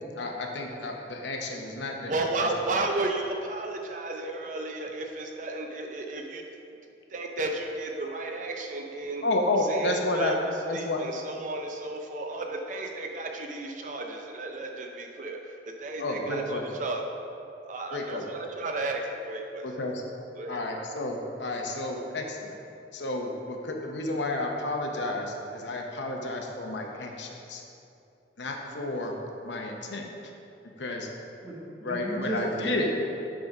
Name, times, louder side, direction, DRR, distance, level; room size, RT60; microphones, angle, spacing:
voice 1, 0.1-2.1 2.4-2.5 9.2-10.3 10.7-11.0 16.0-16.6 17.9-18.2 19.6-20.0 20.5-22.5 22.9-27.6 28.4-29.2 29.4-30.0 30.6-31.1 31.8-32.9, left 2 dB, 90° left, 2 dB, 0.9 m, -31 dB
voice 2, 2.1-6.4 7.1-9.2 9.7-10.4 10.7-17.0 17.7-19.7 20.4-20.6, right 2 dB, 45° right, 2 dB, 0.6 m, -33 dB
voice 3, 31.4-32.9, right 1 dB, 15° right, -7 dB, 1.6 m, -34 dB
8.7 x 3.8 x 5.4 m, 2.7 s
head